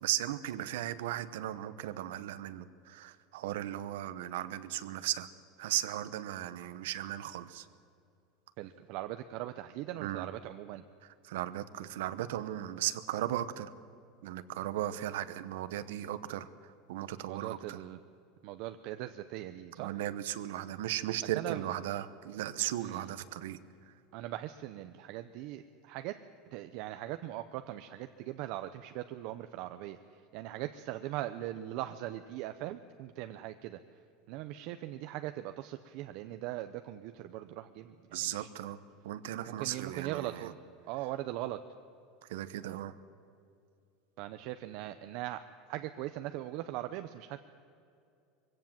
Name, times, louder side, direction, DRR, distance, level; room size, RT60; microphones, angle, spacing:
voice 1, 0.0-5.3 5.6-7.7 10.0-10.3 11.2-13.7 14.2-16.5 16.9-17.8 19.8-23.6 38.1-38.8 39.0-40.3 42.3-42.9, right 13 dB, 85° right, 12 dB, 0.9 m, -36 dB
voice 2, 8.6-10.8 17.3-18.0 18.4-19.9 21.3-21.6 22.8-23.1 24.1-26.2 26.5-33.8 34.3-38.5 39.5-40.6 40.9-41.6 44.2-45.4 45.7-47.4, right 14 dB, 50° right, 8 dB, 0.6 m, -40 dB
22.5 x 17.0 x 7.4 m, 2.5 s
supercardioid pair, 170°, 0 cm